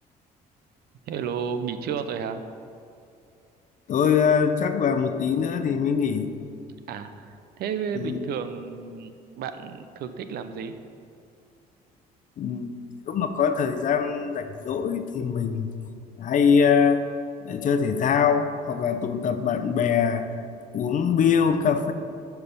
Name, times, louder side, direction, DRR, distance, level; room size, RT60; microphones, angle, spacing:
voice 1, 1.1-2.4 6.9-10.7, right 7 dB, 70° right, 10 dB, 0.7 m, -32 dB
voice 2, 3.9-6.3 8.0-8.2 12.4-12.7 13.1-15.7 16.2-17.0 17.4-20.3 20.7-21.9, left 6 dB, 50° left, 8 dB, 0.7 m, -23 dB
12.0 x 4.7 x 5.4 m, 2.6 s
cardioid pair, 110°, 17 cm